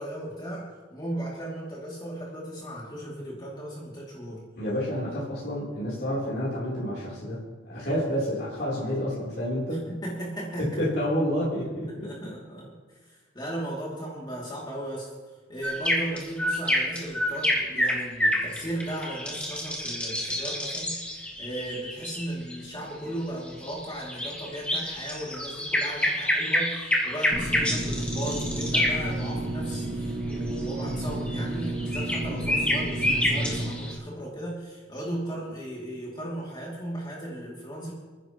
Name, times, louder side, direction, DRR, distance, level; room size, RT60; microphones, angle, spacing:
voice 1, 0.0-4.4 9.7-10.8 12.0-15.1 15.5-37.9, right 1 dB, 25° left, -5 dB, 2.6 m, -36 dB
voice 2, 4.6-9.8 10.6-12.1, equal, 55° left, -9 dB, 3.6 m, -29 dB
sound 1, 15.6-22.5 23.4-29.3 30.3-33.9, equal, 5° left, 1.7 m, -28 dB
sound 2, 27.3-33.7, right 1 dB, 25° right, 1.8 m, -31 dB
30.0 x 10.0 x 3.1 m, 1.3 s
head